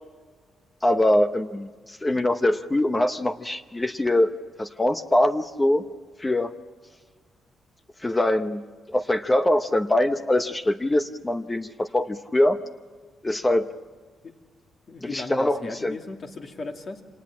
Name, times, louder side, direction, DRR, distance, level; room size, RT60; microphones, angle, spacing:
voice 1, 0.8-4.3 4.6-5.8 6.2-6.5 8.0-8.6 8.9-12.6 13.2-13.7 15.0-16.0, left 1 dB, 15° left, 9 dB, 0.9 m, -23 dB
voice 2, 14.9-17.0, left 3 dB, 45° left, 3 dB, 2.6 m, -36 dB
26.5 x 19.0 x 8.7 m, 1.5 s
cardioid pair, 115°, 0 cm